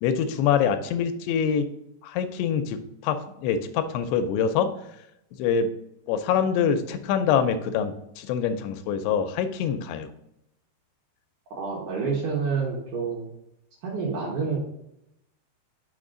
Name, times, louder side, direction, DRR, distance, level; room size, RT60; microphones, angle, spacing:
voice 1, 0.0-1.7 2.0-4.7 5.4-5.7 6.1-10.1, left 7 dB, 85° left, 8 dB, 2.6 m, -25 dB
voice 2, 11.5-13.3 13.8-14.6, right 5 dB, 65° right, -3 dB, 2.2 m, -28 dB
6.5 x 5.3 x 3.7 m, 0.81 s
omnidirectional pair, 4.7 m